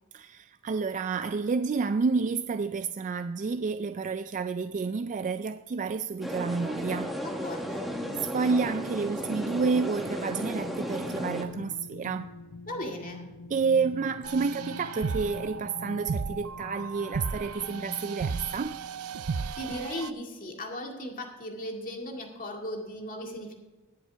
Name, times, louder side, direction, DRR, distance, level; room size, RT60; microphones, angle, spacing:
voice 1, 0.1-7.1 8.2-12.3 13.5-18.8, right 4 dB, 35° right, 0.3 m, -30 dB
sound 1, 6.2-11.4, equal, ahead, 1.2 m, -34 dB
sound 2, 6.9-19.2 19.7-19.8, left 3 dB, 60° left, 0.6 m, -46 dB
voice 2, 7.2-7.9 12.7-13.3 19.6-23.5, left 1 dB, 40° left, 2.1 m, -37 dB
sound 3, 14.2-20.1, right 5 dB, 90° right, 0.6 m, -35 dB
20.5 x 7.3 x 3.4 m
head